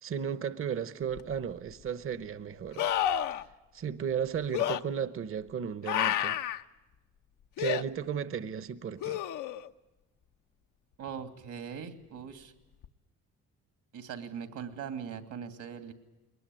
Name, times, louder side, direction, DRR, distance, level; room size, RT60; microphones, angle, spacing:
voice 1, 0.0-3.1 3.7-6.4 7.6-9.2, right 8 dB, 45° right, 1.0 m, -34 dB
sound 1, 1.2-1.3 2.8-3.4 4.5-4.8 5.9-6.6 7.6-7.8 9.0-9.7 12.8-12.9, left 11 dB, 90° left, 0.9 m, -30 dB
voice 2, 11.0-12.5 13.9-15.9, right 7 dB, 75° right, 2.7 m, -40 dB
22.0 x 20.0 x 9.3 m
cardioid pair, 90°, 30 cm